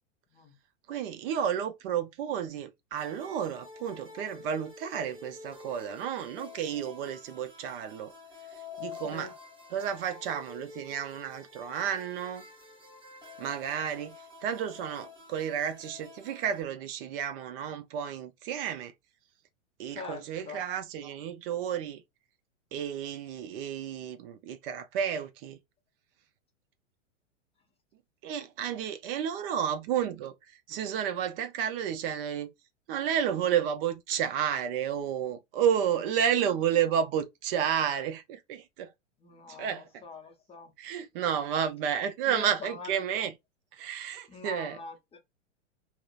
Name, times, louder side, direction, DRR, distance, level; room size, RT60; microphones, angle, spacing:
voice 1, 0.9-8.1 8.8-9.3 9.7-12.4 13.4-18.9 19.8-22.0 22.7-25.6 28.2-32.5 32.9-38.9 39.5-40.0 40.8-43.3 43.7-44.8, right 8 dB, 50° right, 0.6 m, -31 dB
sound 1, 2.9-16.6, left 4 dB, 15° right, 0.9 m, -49 dB
voice 2, 19.9-20.6 39.2-40.7 42.3-42.9 44.3-45.2, left 5 dB, 15° left, 0.6 m, -43 dB
2.8 x 2.0 x 2.4 m
hypercardioid pair, 110°, 37 cm